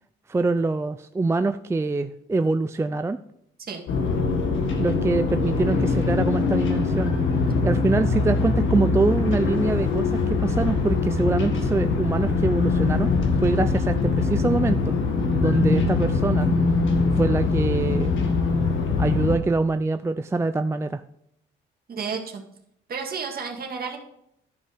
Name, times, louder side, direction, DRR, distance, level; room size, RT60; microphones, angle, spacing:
voice 1, 0.3-3.2 4.8-7.1 7.6-13.1 13.4-15.0 15.4-16.5 17.1-18.1 19.0-21.0, right 3 dB, 15° right, 10 dB, 0.3 m, -24 dB
sound 1, 3.9-19.4, left 4 dB, 75° left, 1.8 m, -22 dB
voice 2, 21.9-22.4 22.9-24.0, right 5 dB, 50° right, 1 dB, 2.1 m, -31 dB
11.5 x 5.4 x 5.0 m, 0.74 s
cardioid pair, 90°, 20 cm